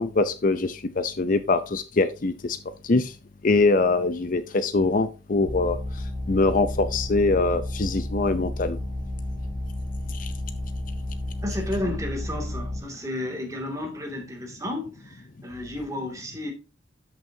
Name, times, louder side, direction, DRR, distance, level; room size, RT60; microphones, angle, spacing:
voice 1, 0.0-2.6 2.8-3.1 3.4-5.8 6.3-8.8 10.1-10.3, left 3 dB, 45° left, 0.5 m, -23 dB
sound 1, 5.4-12.8, left 1 dB, 20° left, 5.6 m, -32 dB
voice 2, 11.4-16.5, left 1 dB, 15° right, 2.3 m, -32 dB
12.5 x 6.1 x 2.7 m
head